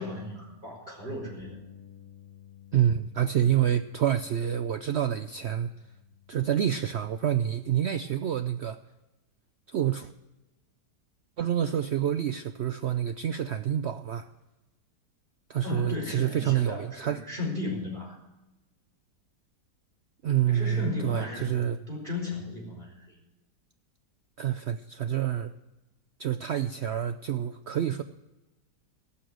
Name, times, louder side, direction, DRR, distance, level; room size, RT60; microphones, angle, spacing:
voice 1, 0.0-1.6 15.6-18.2 20.4-23.2, left 2 dB, 25° right, -3 dB, 4.7 m, -35 dB
Bass guitar, 1.4-7.6, left 10 dB, 60° left, 2.1 m, -54 dB
voice 2, 2.7-5.7 6.3-8.8 9.7-10.1 11.4-14.3 15.5-17.2 20.2-21.8 24.4-25.5 26.2-28.0, right 10 dB, 90° right, 10 dB, 0.5 m, -27 dB
17.5 x 6.7 x 7.7 m, 1.0 s
omnidirectional pair, 1.8 m